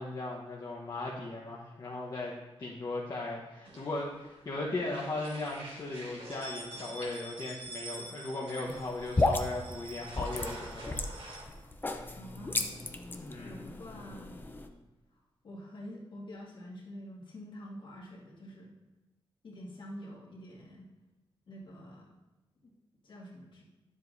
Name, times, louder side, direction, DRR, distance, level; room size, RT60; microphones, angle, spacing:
voice 1, 0.0-2.3 2.6-11.1 13.2-13.6, left 2 dB, 45° left, -4 dB, 1.1 m, -37 dB
sound 1, 3.6-4.4 4.7-11.4, right 2 dB, 80° right, 2.9 m, -46 dB
sound 2, 8.7-14.7, left 2 dB, 20° left, 0.6 m, -34 dB
voice 2, 12.1-12.8 13.1-14.4 15.4-18.8 19.4-20.9 21.5-22.1 22.6-22.7 23.0-23.6, equal, 60° left, -4 dB, 2.1 m, -47 dB
10.5 x 7.3 x 2.7 m, 1.1 s
wide cardioid pair, 105°, 10 cm